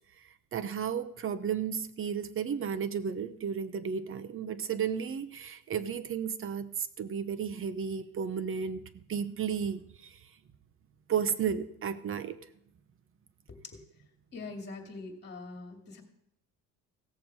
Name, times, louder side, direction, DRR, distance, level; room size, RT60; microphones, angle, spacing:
voice 1, 0.5-10.2 11.1-12.4, right 7 dB, 40° right, 13 dB, 0.8 m, -33 dB
voice 2, 14.3-16.0, left 3 dB, 30° left, 3 dB, 2.5 m, -43 dB
17.0 x 7.0 x 4.7 m, 0.78 s
cardioid pair, 115°, 34 cm